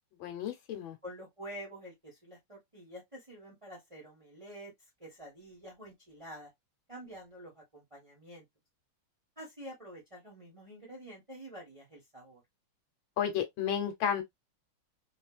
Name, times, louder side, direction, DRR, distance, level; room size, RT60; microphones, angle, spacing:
voice 1, 0.2-1.0 13.2-14.2, left 8 dB, 75° left, 1.5 m, -32 dB
voice 2, 1.0-4.7 5.0-6.5 6.9-8.4 9.4-12.4, equal, 35° right, 0.5 m, -48 dB
3.2 x 2.4 x 2.3 m
omnidirectional pair, 2.3 m